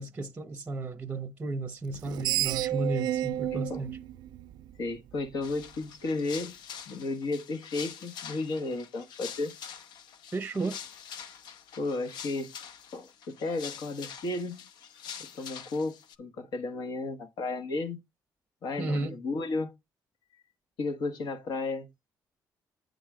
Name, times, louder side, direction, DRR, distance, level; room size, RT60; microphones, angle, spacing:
voice 1, 0.0-4.0 10.3-10.8 18.8-19.2, right 2 dB, 20° right, 0.7 m, -33 dB
Screech, 1.9-5.1, right 13 dB, 85° right, 0.4 m, -31 dB
voice 2, 3.5-3.8 4.8-6.6 6.9-9.5 11.8-12.5 12.9-13.1 13.4-14.7 15.2-18.0 18.6-19.7 20.8-21.9, left 3 dB, 70° left, 1.3 m, -33 dB
sound 1, 5.4-16.2, left 8 dB, 85° left, 0.7 m, -45 dB
8.9 x 3.9 x 4.8 m
cardioid pair, 135°, 7 cm